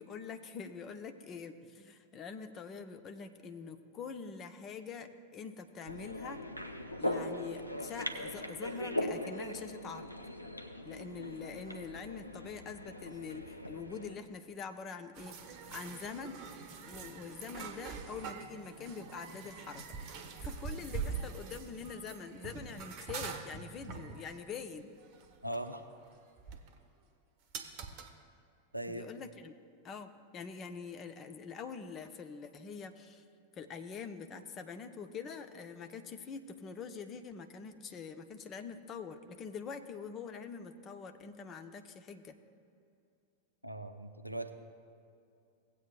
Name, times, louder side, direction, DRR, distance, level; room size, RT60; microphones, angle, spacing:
voice 1, 0.0-6.4 7.0-10.1 10.8-15.4 15.7-16.4 16.9-20.0 20.4-24.9 28.9-29.5 29.8-33.2 33.6-42.4, left 5 dB, 30° left, 7 dB, 0.6 m, -45 dB
sound 1, 5.9-14.1, left 1 dB, 85° left, 0.6 m, -40 dB
sound 2, 15.1-26.8 27.5-28.1 32.1-32.2, right 5 dB, 40° right, 0.9 m, -44 dB
voice 2, 25.4-25.8 28.7-29.0 43.6-44.5, right 1 dB, 90° right, 7 dB, 0.6 m, -39 dB
17.5 x 8.3 x 2.4 m, 2.5 s
figure-of-eight pair, 90°, 0 cm